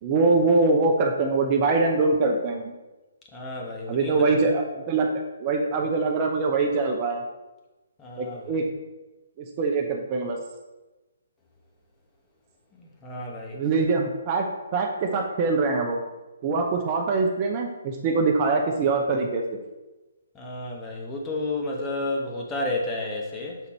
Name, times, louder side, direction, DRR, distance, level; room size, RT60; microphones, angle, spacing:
voice 1, 0.0-2.7 3.9-5.1 5.4-7.2 8.2-8.7 9.4-10.4 13.5-14.5 14.7-16.0 16.4-19.6, right 3 dB, 30° right, 2 dB, 0.7 m, -23 dB
voice 2, 3.3-4.4 8.0-8.6 12.8-13.6 20.3-23.6, left 2 dB, 15° left, -1 dB, 1.2 m, -31 dB
7.0 x 4.0 x 4.3 m, 1.1 s
hypercardioid pair, 150°, 0 cm